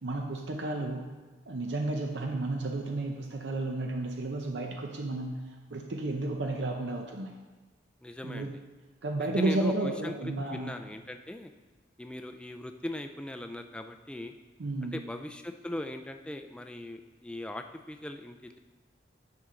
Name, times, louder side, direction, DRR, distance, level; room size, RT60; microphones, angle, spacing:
voice 1, 0.0-1.1 1.5-5.4 5.7-7.4 8.2-8.5 9.0-10.7 14.6-15.0, right 2 dB, 75° right, 2 dB, 0.6 m, -32 dB
voice 2, 8.0-8.5 9.4-11.5 12.0-14.3 14.8-18.6, left 1 dB, 5° left, 6 dB, 0.3 m, -39 dB
9.5 x 5.9 x 3.8 m, 1.3 s
head